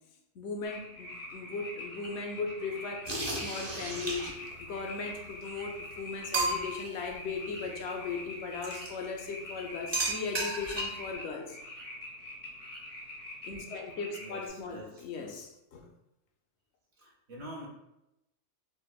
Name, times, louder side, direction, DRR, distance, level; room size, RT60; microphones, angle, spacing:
voice 1, 0.3-11.6 13.4-15.9, left 4 dB, 65° left, 3 dB, 0.8 m, -38 dB
sound 1, 0.6-14.5, left 1 dB, 15° left, 0.6 m, -45 dB
sound 2, 3.1-4.5 5.4-5.5 5.9-6.0 6.3-6.9 8.6-8.9 9.9-11.1, right 2 dB, 40° right, 0.4 m, -33 dB
voice 2, 14.2-15.4 17.0-17.7, right 1 dB, 65° right, -3 dB, 1.0 m, -46 dB
5.0 x 2.2 x 2.2 m, 0.88 s
omnidirectional pair, 1.3 m